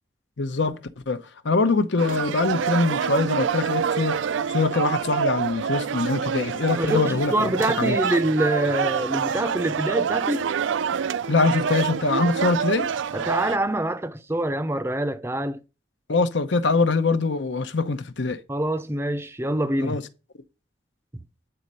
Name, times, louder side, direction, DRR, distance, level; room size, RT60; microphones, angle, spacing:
voice 1, 0.4-0.8 1.1-4.2 4.5-8.0 11.3-12.9 16.1-18.4 19.8-20.0, left 3 dB, 70° left, 0.8 m, -23 dB
sound 1, 2.0-13.6, right 7 dB, 75° right, 0.4 m, -26 dB
voice 2, 6.8-10.5 13.1-15.6 18.5-20.0, right 1 dB, 15° right, 0.5 m, -25 dB
8.8 x 4.2 x 6.7 m
head